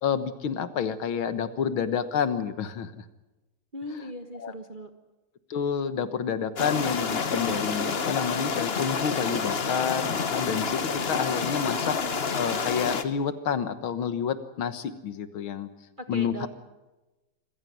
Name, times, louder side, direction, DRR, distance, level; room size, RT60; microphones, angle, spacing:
voice 1, 0.0-3.0 4.4-4.5 5.5-12.0 12.3-15.7 16.1-16.3, left 7 dB, 70° left, 11 dB, 2.0 m, -29 dB
voice 2, 3.7-4.9 16.0-16.5, equal, 30° right, 6 dB, 1.2 m, -38 dB
sound 1, 6.6-13.0, left 5 dB, 35° left, 1.1 m, -28 dB
26.0 x 15.5 x 9.3 m, 1.1 s
omnidirectional pair, 2.3 m